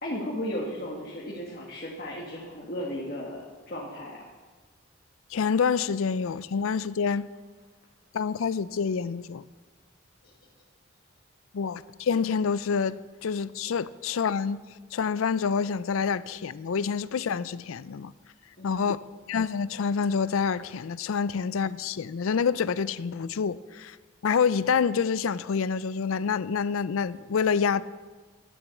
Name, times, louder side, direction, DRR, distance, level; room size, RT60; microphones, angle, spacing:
voice 1, 0.0-4.2 10.2-10.3 18.6-19.0, equal, 45° left, 1.7 m, -35 dB
voice 2, 5.3-7.3 8.1-9.4 11.5-14.6 14.9-18.1 18.6-19.0 19.3-24.0 24.2-27.8, left 6 dB, 80° left, 0.4 m, -27 dB
12.0 x 7.1 x 8.2 m
head